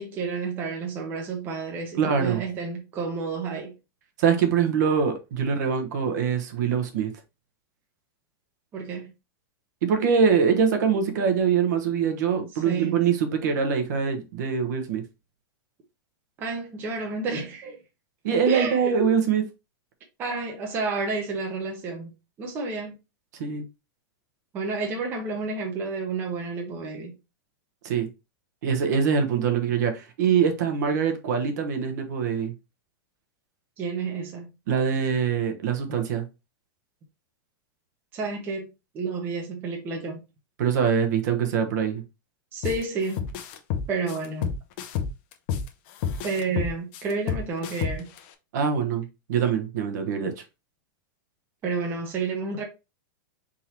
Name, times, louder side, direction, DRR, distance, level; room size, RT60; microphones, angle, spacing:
voice 1, 0.0-3.7 8.7-9.1 12.5-13.1 16.4-17.8 18.5-19.1 20.2-23.0 24.5-27.1 33.8-34.5 38.1-38.6 38.9-40.2 42.5-43.2 43.9-44.5 46.2-48.1 51.6-52.6, right 4 dB, 20° right, 0.8 m, -30 dB
voice 2, 2.0-2.4 4.2-7.1 9.8-15.0 18.2-19.4 23.4-23.6 27.8-28.1 28.6-32.5 34.7-36.2 40.6-42.0 48.5-50.4, right 6 dB, 50° right, 1.0 m, -24 dB
sound 1, 42.6-42.8 43.2-45.7 46.0-48.2, left 7 dB, 35° left, 0.5 m, -29 dB
4.5 x 3.7 x 2.8 m
supercardioid pair, 175°, 12 cm